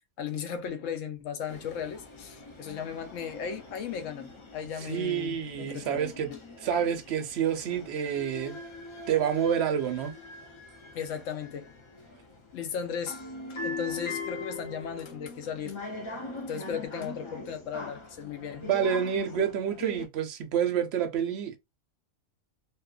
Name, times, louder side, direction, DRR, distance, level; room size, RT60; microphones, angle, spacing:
voice 1, 0.2-6.4 10.9-11.7 12.5-15.8 16.4-18.7, left 7 dB, 70° left, 0.9 m, -36 dB
sound 1, 1.5-20.1, left 2 dB, 50° left, 0.3 m, -42 dB
voice 2, 4.9-6.3 6.6-8.6 9.1-10.1 18.6-21.6, right 8 dB, 60° right, 0.8 m, -28 dB
2.7 x 2.4 x 2.3 m
omnidirectional pair, 1.4 m